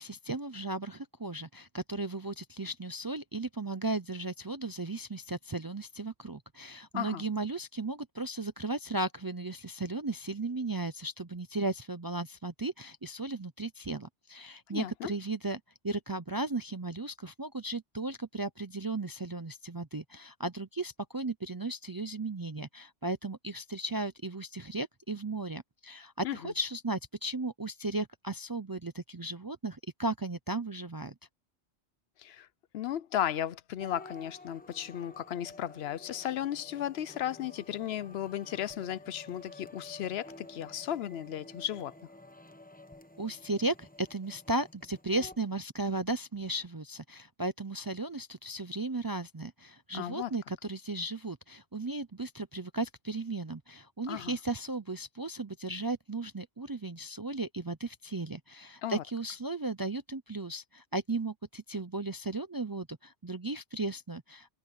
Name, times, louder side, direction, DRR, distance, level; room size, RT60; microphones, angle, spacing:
voice 1, 0.0-31.1 43.2-64.5, right 2 dB, 30° right, 0.4 m, -35 dB
voice 2, 6.9-7.3 14.7-15.1 26.2-26.5 32.2-32.5 32.7-42.0 49.9-50.3 54.1-54.4 58.8-59.0, left 11 dB, 70° left, 0.8 m, -35 dB
sound 1, 33.8-45.4, left 2 dB, 10° left, 1.0 m, -51 dB
omnidirectional pair, 1.1 m